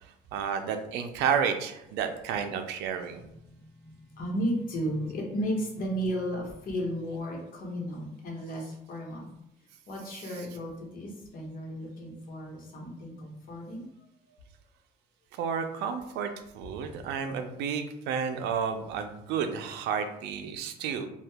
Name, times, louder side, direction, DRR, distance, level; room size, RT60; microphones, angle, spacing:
voice 1, 0.0-3.2 15.4-21.1, right 7 dB, 85° right, 7 dB, 0.4 m, -31 dB
voice 2, 3.4-9.3 9.9-13.9 14.3-14.4, equal, 55° left, -1 dB, 1.0 m, -34 dB
2.7 x 2.3 x 3.4 m, 0.83 s
cardioid pair, 110°, 17 cm